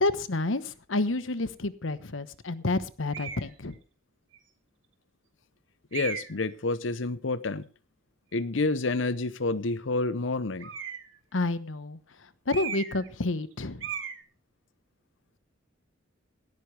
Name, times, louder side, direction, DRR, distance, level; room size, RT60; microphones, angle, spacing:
voice 1, 0.0-3.8 11.3-12.0 12.5-13.9, left 2 dB, 90° left, 1.1 m, -29 dB
sound 1, 3.1-3.5 4.3-4.4 5.9-6.5 10.6-11.2 12.5-13.1 13.4-13.5 13.8-14.2, right 7 dB, 80° right, 2.2 m, -36 dB
voice 2, 5.9-7.7 8.3-10.7, left 3 dB, 70° left, 0.8 m, -29 dB
17.5 x 13.0 x 3.4 m
head